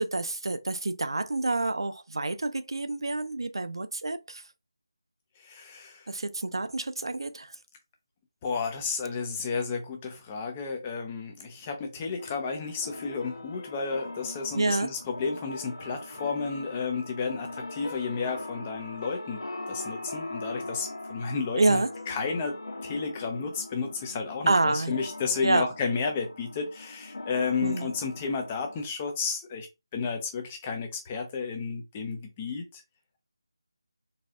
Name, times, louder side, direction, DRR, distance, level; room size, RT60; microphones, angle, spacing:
voice 1, 0.0-4.4 6.1-7.5 14.5-14.9 21.5-21.9 24.5-25.0 25.4-25.7 27.6-27.9, right 2 dB, 80° right, 0.5 m, -27 dB
voice 2, 5.4-6.1 8.4-19.4 19.7-22.6 22.8-29.7 29.9-32.8, left 5 dB, 10° left, 0.4 m, -32 dB
sound 1, 12.2-28.9, left 2 dB, 70° left, 1.2 m, -41 dB
4.0 x 2.5 x 2.4 m
figure-of-eight pair, 175°, 2 cm